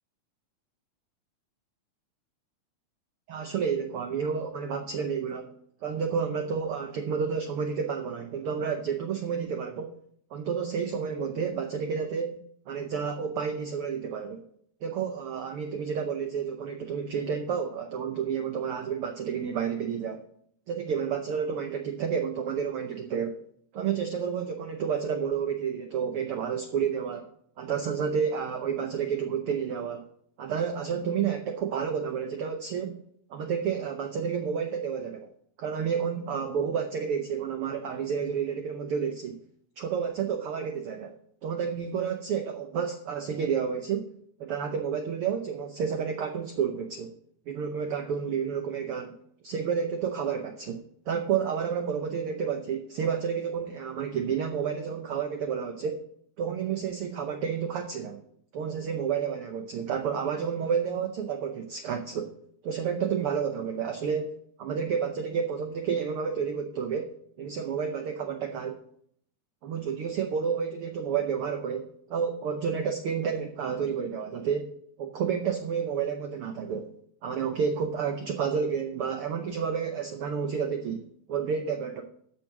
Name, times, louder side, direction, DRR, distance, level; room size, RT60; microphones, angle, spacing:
voice 1, 3.3-5.5 5.8-10.0 10.3-14.4 14.8-20.2 20.7-23.3 23.7-27.3 27.6-30.1 30.4-33.0 33.3-35.3 35.6-39.4 39.8-41.1 41.4-44.1 44.4-47.1 47.5-49.2 49.4-56.0 56.4-58.2 58.5-62.3 62.6-64.3 64.6-67.1 67.4-68.8 69.6-74.7 75.0-76.9 77.2-82.0, right 7 dB, 85° right, 5 dB, 1.2 m, -30 dB
13.5 x 5.4 x 6.0 m, 0.67 s
omnidirectional pair, 3.6 m